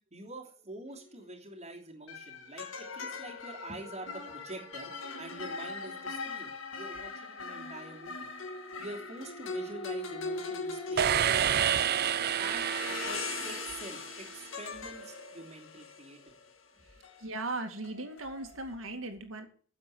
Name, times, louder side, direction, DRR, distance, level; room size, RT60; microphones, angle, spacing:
voice 1, 0.1-4.9 5.2-8.3 8.8-12.0 12.4-16.2, right 2 dB, 35° right, -1 dB, 2.9 m, -46 dB
sound 1, 0.9-1.2 2.1-18.8, left 3 dB, 70° left, 2.1 m, -41 dB
sound 2, 11.0-14.1, right 9 dB, 50° right, 0.5 m, -29 dB
voice 2, 17.2-19.5, right 2 dB, 80° right, 6 dB, 2.2 m, -38 dB
9.7 x 7.5 x 9.3 m, 0.44 s
head